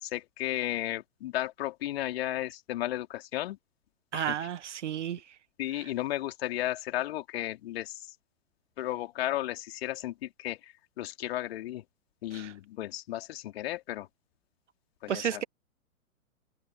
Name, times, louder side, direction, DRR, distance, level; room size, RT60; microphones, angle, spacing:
voice 1, 0.0-3.6 4.1-4.5 5.6-8.0 8.8-11.8 12.2-14.1 15.0-15.4, left 14 dB, 45° left, 3.4 m, -34 dB
voice 2, 4.1-5.2 12.3-12.5 15.1-15.4, right 9 dB, 55° right, 1.7 m, -32 dB
figure-of-eight pair, 115°, 43 cm